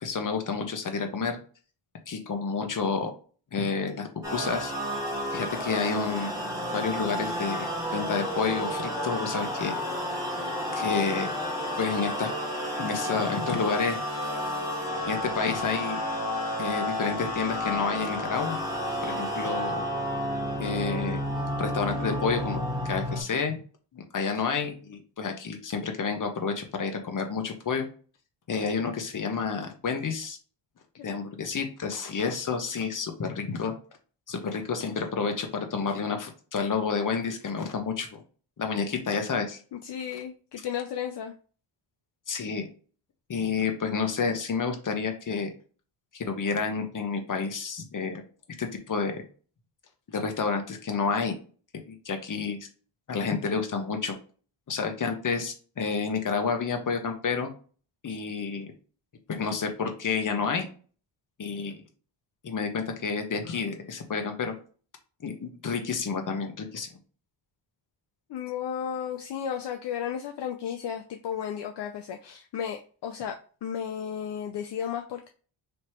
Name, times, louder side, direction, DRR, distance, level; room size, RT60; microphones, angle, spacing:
voice 1, 0.0-1.4 2.1-3.1 3.5-4.7 5.3-6.3 6.7-9.7 10.7-11.3 11.8-12.3 12.8-14.0 15.0-16.0 16.6-18.6 19.0-19.8 20.6-21.2 21.6-23.6 23.9-27.9 28.5-30.4 31.0-33.7 34.3-38.2 38.6-39.6 42.3-42.7 43.3-45.5 46.1-48.2 48.6-49.2 50.1-51.4 51.9-52.7 53.1-54.2 54.7-57.5 58.0-58.7 59.3-60.7 61.4-61.8 62.4-64.5 65.2-66.9, left 5 dB, 40° left, 5 dB, 1.0 m, -30 dB
sound 1, 4.2-23.2, equal, 5° right, 1.5 m, -31 dB
voice 2, 39.7-41.3 68.3-75.3, left 8 dB, 60° left, 4 dB, 0.6 m, -34 dB
3.3 x 3.0 x 4.3 m, 0.40 s
cardioid pair, 100°, 46 cm